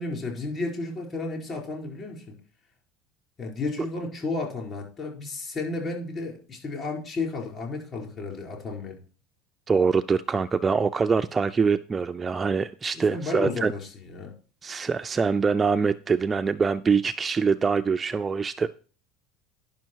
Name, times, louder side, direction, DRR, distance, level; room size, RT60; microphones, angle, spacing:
voice 1, 0.0-2.3 3.4-9.0 12.9-14.3, left 3 dB, 30° left, 4.5 m, -33 dB
voice 2, 9.7-13.7 14.6-18.7, right 5 dB, 20° right, 0.4 m, -24 dB
10.5 x 6.2 x 4.6 m
supercardioid pair, 130°, 0 cm